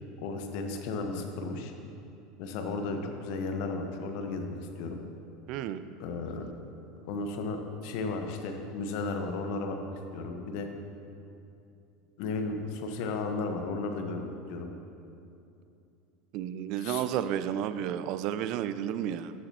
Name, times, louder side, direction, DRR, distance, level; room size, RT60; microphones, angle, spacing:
voice 1, 0.2-1.7 2.4-5.0 6.0-6.5 7.0-9.8 10.1-10.7 12.2-14.7 16.8-17.0, left 3 dB, 55° left, 4 dB, 1.3 m, -34 dB
voice 2, 5.5-5.8 16.3-19.3, right 10 dB, 50° right, 12 dB, 0.5 m, -32 dB
14.0 x 12.5 x 3.0 m, 2.7 s
figure-of-eight pair, 75°, 0 cm